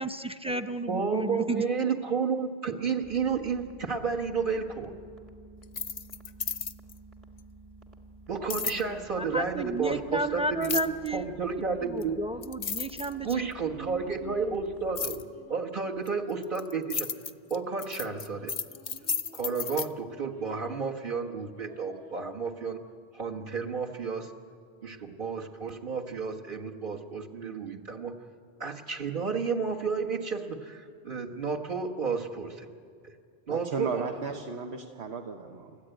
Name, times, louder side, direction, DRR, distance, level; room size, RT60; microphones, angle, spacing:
voice 1, 0.0-1.9 9.2-11.3 11.8-13.5 13.8-14.3, right 1 dB, 5° right, 9 dB, 0.5 m, -33 dB
voice 2, 0.9-4.9 8.3-10.8 11.1-12.2 13.2-15.2 15.5-17.1 17.5-18.5 19.3-22.8 23.1-24.3 24.8-28.1 28.6-32.7 33.0-33.1 33.5-34.4, right 5 dB, 55° right, -1 dB, 1.6 m, -31 dB
sound 1, 3.0-15.3, right 2 dB, 35° right, 1.8 m, -52 dB
sound 2, 5.6-7.0 8.5-8.8 10.6-11.1 12.0-12.1 12.4-13.5 15.0-15.2 16.1-19.9, left 6 dB, 45° left, 0.7 m, -33 dB
sound 3, 10.3-11.4 11.7-12.5 13.1-17.3 17.8-21.2 21.5-22.3, right 2 dB, 70° right, 6.5 m, -55 dB
voice 3, 33.5-35.8, right 4 dB, 90° right, 3 dB, 1.3 m, -35 dB
29.5 x 14.0 x 9.0 m, 2.3 s
omnidirectional pair, 1.1 m